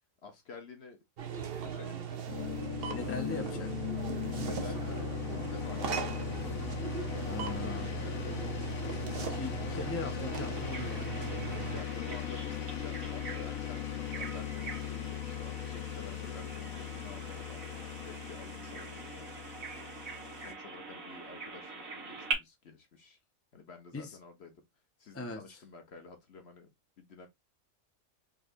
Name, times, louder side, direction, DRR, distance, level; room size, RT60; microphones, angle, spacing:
voice 1, 0.2-1.0 1.6-2.2 2.8-3.7 4.1-6.2 7.5-8.3 11.5-19.4 20.3-23.2 23.5-24.6 25.0-26.7 27.0-27.3, left 4 dB, 55° left, 1.1 m, -51 dB
sound 1, 1.2-11.8, right 7 dB, 50° right, 0.8 m, -38 dB
sound 2, 2.3-20.5, left 11 dB, 80° left, 1.3 m, -39 dB
voice 2, 2.9-3.7 4.2-5.1 7.3-7.9 9.2-11.3 23.9-24.2 25.1-25.4, left 3 dB, 10° left, 0.8 m, -40 dB
Bird vocalization bird call bird song, 10.6-22.3, right 4 dB, 75° right, 2.0 m, -43 dB
4.9 x 3.3 x 2.5 m
omnidirectional pair, 1.4 m